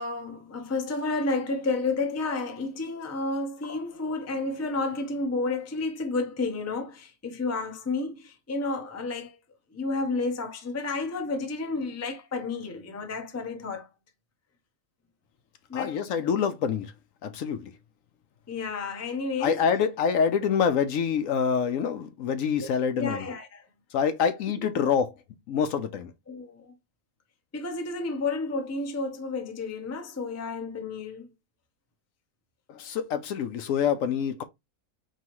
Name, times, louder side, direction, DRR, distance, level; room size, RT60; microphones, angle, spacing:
voice 1, 0.0-9.4 9.7-13.9 15.7-16.0 18.5-19.6 22.9-23.7 26.3-26.7 27.5-31.3, left 3 dB, 20° left, 0.4 m, -31 dB
voice 2, 15.7-16.9 17.2-17.7 19.4-23.3 23.9-25.1 25.5-26.1 32.7-34.4, left 7 dB, 70° left, 0.9 m, -26 dB
4.6 x 3.1 x 3.0 m
omnidirectional pair, 1.6 m